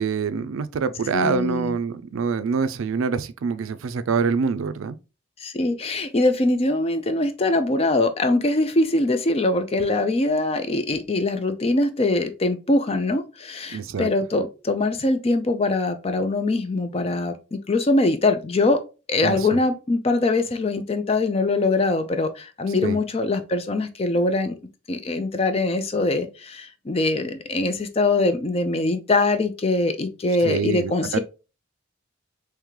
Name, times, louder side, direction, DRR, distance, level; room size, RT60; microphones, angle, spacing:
voice 1, 0.0-5.0 13.7-14.1 19.2-19.6 22.8-23.0 30.4-31.2, right 5 dB, 80° right, 0.4 m, -25 dB
voice 2, 1.1-1.8 5.4-18.8 19.1-24.6 24.9-31.2, left 2 dB, 30° left, 0.4 m, -23 dB
3.6 x 3.2 x 3.1 m
head